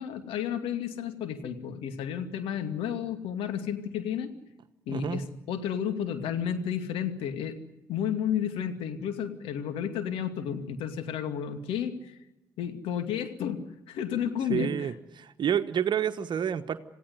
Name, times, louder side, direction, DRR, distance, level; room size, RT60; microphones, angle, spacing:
voice 1, 0.0-4.3 4.9-7.6 7.9-12.2 12.6-14.9, left 8 dB, 70° left, 8 dB, 2.4 m, -32 dB
voice 2, 4.9-5.2 14.5-16.8, right 9 dB, 55° right, 9 dB, 1.2 m, -29 dB
27.5 x 16.5 x 9.5 m, 0.99 s
hypercardioid pair, 45°, 10 cm